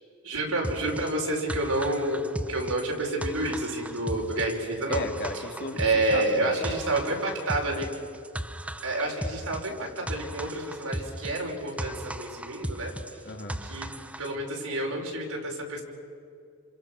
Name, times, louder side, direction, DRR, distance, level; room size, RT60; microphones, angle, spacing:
voice 1, 0.2-5.1 5.8-7.9 8.8-12.9 13.6-13.9 14.2-15.8, right 2 dB, 85° right, 0 dB, 5.7 m, -29 dB
sound 1, 0.6-14.3, right 1 dB, 5° right, 0.7 m, -37 dB
voice 2, 4.9-6.6 7.0-7.1 13.2-13.6, left 3 dB, 50° left, 3 dB, 2.6 m, -35 dB
28.5 x 27.5 x 6.3 m, 2.4 s
head